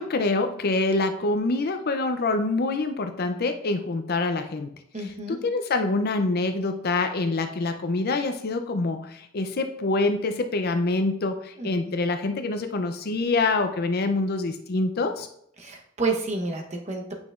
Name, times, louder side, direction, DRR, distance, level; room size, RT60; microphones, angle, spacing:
voice 1, 0.0-4.7 5.0-15.3, left 3 dB, 50° left, 7 dB, 0.5 m, -26 dB
voice 2, 4.9-5.4 11.6-11.7 15.6-17.1, right 3 dB, 35° right, 2 dB, 1.0 m, -29 dB
8.8 x 5.7 x 2.4 m, 0.69 s
head